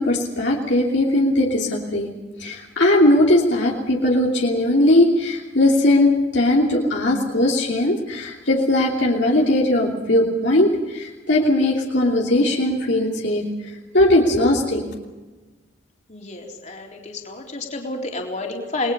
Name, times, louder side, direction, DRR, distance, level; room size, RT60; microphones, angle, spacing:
voice 1, 0.0-2.1 2.4-13.4 13.9-14.8, left 1 dB, 60° left, -2 dB, 3.0 m, -19 dB
voice 2, 16.1-18.9, left 2 dB, 35° left, 0 dB, 3.8 m, -30 dB
30.0 x 21.0 x 5.4 m, 1.2 s
head